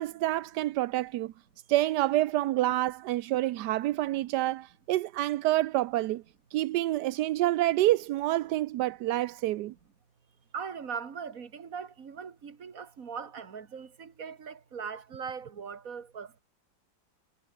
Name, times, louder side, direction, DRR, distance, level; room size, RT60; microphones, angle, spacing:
voice 1, 0.0-1.3 1.7-6.2 6.5-9.7, right 15 dB, 70° right, 1.0 m, -27 dB
voice 2, 10.5-16.4, right 6 dB, 45° right, 2.1 m, -40 dB
omnidirectional pair, 2.2 m